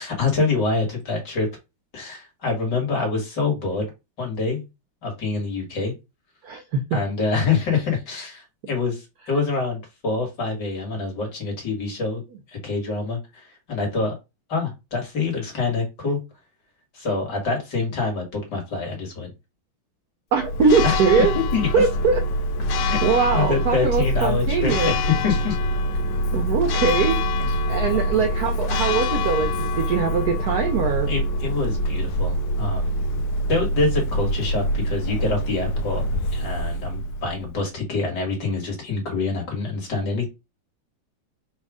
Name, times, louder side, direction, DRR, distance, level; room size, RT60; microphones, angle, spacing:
voice 1, 0.0-1.5 1.9-3.9 4.2-4.7 5.0-5.9 6.9-12.2 12.5-14.1 14.5-16.2 16.9-19.3 20.8-21.0 21.5-21.7 22.9-25.0 25.2-25.6 27.4-27.5 31.1-33.2 33.5-36.0 36.3-40.3, left 4 dB, 55° left, 2.3 m, -26 dB
voice 2, 6.4-7.0 20.3-21.3 21.7-22.2 23.0-24.9 26.3-27.2 27.7-31.1, right 5 dB, 70° right, 0.9 m, -22 dB
Church bell, 20.4-37.6, equal, 75° left, 1.1 m, -25 dB
4.4 x 2.5 x 4.8 m
omnidirectional pair, 2.3 m